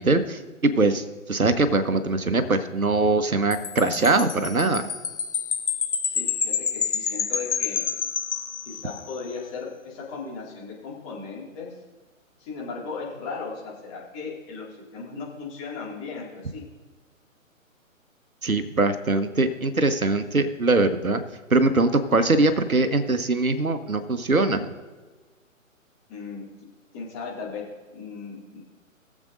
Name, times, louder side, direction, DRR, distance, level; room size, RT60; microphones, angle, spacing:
voice 1, 0.0-4.9 18.4-21.2 21.5-24.7, right 3 dB, 85° right, 10 dB, 1.0 m, -22 dB
Wind chime, 3.5-9.2, left 6 dB, 55° left, 0.7 m, -28 dB
voice 2, 6.0-7.8 8.7-11.7 12.4-16.6 26.1-26.4 26.9-27.6 27.9-28.6, left 5 dB, 20° left, -4 dB, 2.3 m, -36 dB
20.5 x 7.3 x 2.6 m, 1.3 s
figure-of-eight pair, 135°, 41 cm